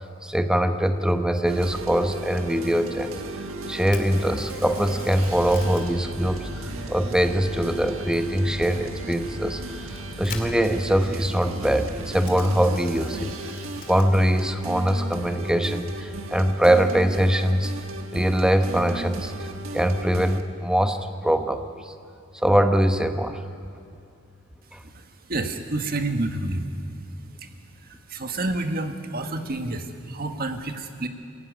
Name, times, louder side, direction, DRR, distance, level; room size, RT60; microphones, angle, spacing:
voice 1, 0.0-3.1 3.7-9.6 10.2-13.3 13.9-17.7 18.1-21.0 21.2-21.9 22.3-23.4 24.7-24.8, equal, 5° right, 7 dB, 1.0 m, -22 dB
sound 1, 1.5-20.4, right 1 dB, 80° right, 1.5 m, -35 dB
Camera, 3.8-17.9, left 5 dB, 45° left, 2.6 m, -47 dB
sound 2, 4.7-10.6, left 1 dB, 20° left, 0.9 m, -44 dB
voice 2, 24.8-26.7 27.4-27.5 27.8-31.1, right 2 dB, 45° right, 6 dB, 1.6 m, -29 dB
23.0 x 15.5 x 9.5 m, 2.5 s
head